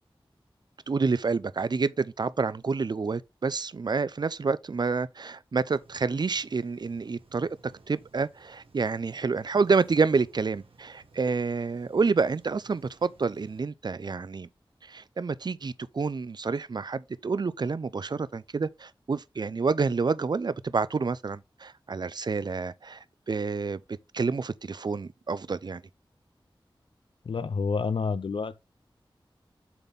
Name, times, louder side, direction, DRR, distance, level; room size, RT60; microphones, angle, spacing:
voice 1, 0.9-7.5 7.9-14.5 14.9-23.8 24.1-25.8, right 4 dB, 50° right, 0.4 m, -28 dB
sound 1, 5.7-13.6, right 3 dB, 90° right, 1.4 m, -58 dB
voice 2, 27.2-28.6, left 5 dB, 70° left, 0.4 m, -29 dB
6.9 x 4.2 x 3.5 m
wide cardioid pair, 80°, 9 cm